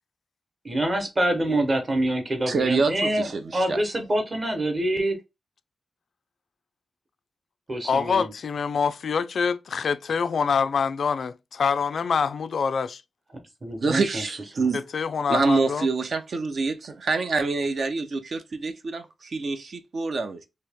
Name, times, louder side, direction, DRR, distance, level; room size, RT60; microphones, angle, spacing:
voice 1, 0.6-5.2 7.7-8.3 13.6-14.7, right 1 dB, 30° right, 0.9 m, -26 dB
voice 2, 2.5-3.8 13.8-14.8 15.3-20.4, right 3 dB, 55° right, 0.5 m, -26 dB
voice 3, 7.8-13.0 14.7-15.9, left 6 dB, 65° left, 0.3 m, -25 dB
2.9 x 2.8 x 3.4 m
wide cardioid pair, 160°, 0 cm